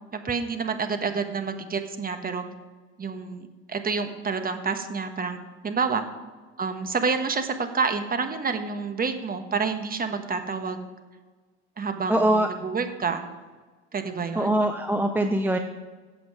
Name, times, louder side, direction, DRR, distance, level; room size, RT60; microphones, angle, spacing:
voice 1, 0.1-2.4 3.0-5.4 5.6-6.0 6.6-10.8 11.8-13.2 13.9-14.5, right 5 dB, 25° right, 8 dB, 1.3 m, -28 dB
voice 2, 12.1-12.5 14.4-15.6, right 1 dB, 5° right, 6 dB, 0.7 m, -22 dB
15.0 x 7.9 x 4.9 m, 1.4 s
supercardioid pair, 95°, 35 cm